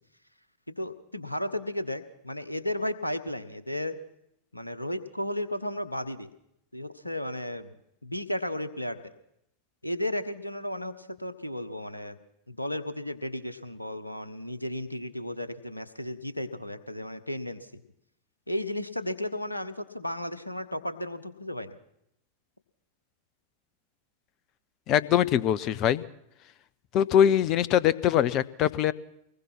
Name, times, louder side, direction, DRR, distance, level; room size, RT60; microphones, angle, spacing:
voice 1, 0.7-4.0 4.5-6.3 6.7-7.8 8.0-9.1 9.8-12.2 12.5-17.8 18.5-21.8, left 1 dB, 85° left, 12 dB, 1.3 m, -34 dB
voice 2, 24.9-26.0 26.9-28.9, left 10 dB, 35° left, 20 dB, 0.8 m, -23 dB
24.0 x 20.0 x 6.0 m, 0.77 s
figure-of-eight pair, 90°, 0 cm